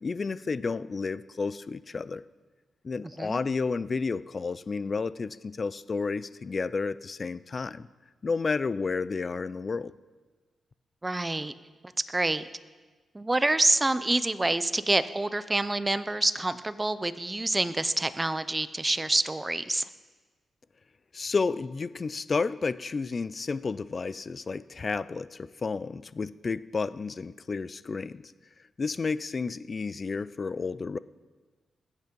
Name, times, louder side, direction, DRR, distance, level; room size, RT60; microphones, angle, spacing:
voice 1, 0.0-2.2 2.8-7.9 8.2-9.9 21.1-28.3 28.8-31.0, left 4 dB, 40° left, 17 dB, 0.4 m, -31 dB
voice 2, 11.0-11.5 12.1-12.4 13.1-19.9, right 2 dB, 20° right, 13 dB, 0.6 m, -27 dB
20.0 x 8.2 x 5.3 m, 1.3 s
cardioid pair, 90°, 0 cm